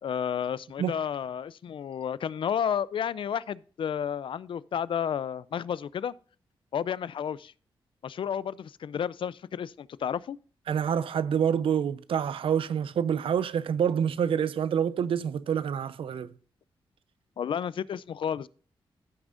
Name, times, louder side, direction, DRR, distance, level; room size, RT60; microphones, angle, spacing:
voice 1, 0.0-6.1 6.7-7.5 8.0-10.4 17.4-18.5, left 8 dB, 65° left, 0.5 m, -31 dB
voice 2, 10.7-16.3, right 8 dB, 75° right, 0.6 m, -27 dB
15.0 x 6.2 x 2.5 m
cardioid pair, 80°, 9 cm